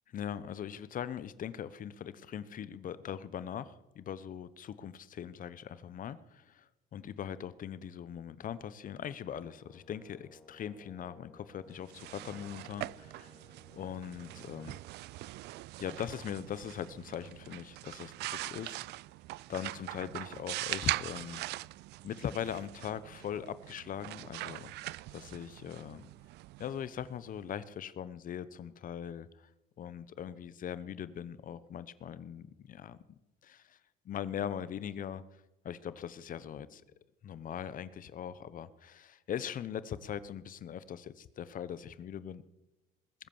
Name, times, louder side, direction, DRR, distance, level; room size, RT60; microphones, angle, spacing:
voice 1, 0.1-13.3 13.7-14.8 15.8-18.8 19.5-21.4 22.0-24.7 25.1-26.1 26.6-29.5 29.8-33.8 34.0-35.2 35.6-36.8 37.2-42.4, left 9 dB, 50° left, 15 dB, 0.9 m, -41 dB
Brass instrument, 9.4-14.9, left 2 dB, ahead, 3.5 m, -60 dB
sound 1, 11.7-27.4, right 18 dB, 70° right, 0.4 m, -42 dB
20.5 x 8.2 x 7.2 m, 0.97 s
supercardioid pair, 95°, 18 cm